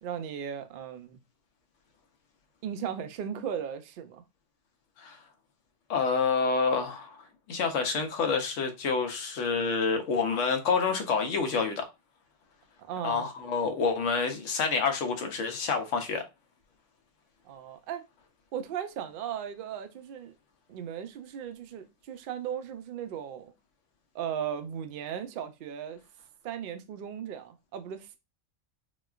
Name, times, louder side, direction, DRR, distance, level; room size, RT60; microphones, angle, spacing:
voice 1, 0.0-1.2 2.6-4.2 12.8-13.3 17.4-18.0 18.5-20.3 20.7-23.5 24.1-26.0 26.4-28.2, right 8 dB, 65° right, 0.5 m, -37 dB
voice 2, 5.9-11.9 13.0-16.2, left 5 dB, 75° left, 1.0 m, -28 dB
4.0 x 2.2 x 2.3 m
omnidirectional pair, 1.3 m